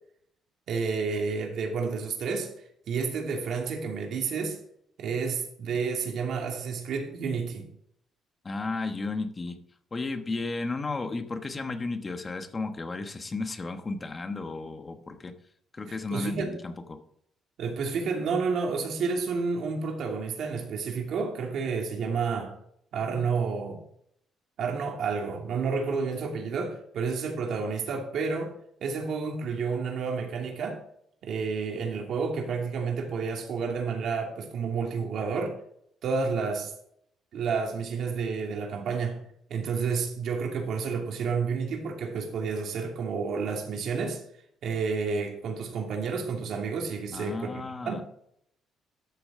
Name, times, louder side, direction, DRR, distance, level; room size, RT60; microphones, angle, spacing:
voice 1, 0.7-2.5 2.9-4.6 5.0-7.7 15.9-16.5 17.6-22.5 22.9-23.8 24.6-28.5 28.8-30.8 31.2-35.6 36.0-36.7 37.3-39.2 39.5-44.2 44.6-48.0, right 5 dB, 65° right, 2.6 m, -30 dB
voice 2, 8.4-9.6 9.9-15.3 15.7-17.0 47.1-48.0, left 3 dB, 25° left, 1.2 m, -33 dB
13.0 x 7.0 x 3.7 m
cardioid pair, 125°, 0 cm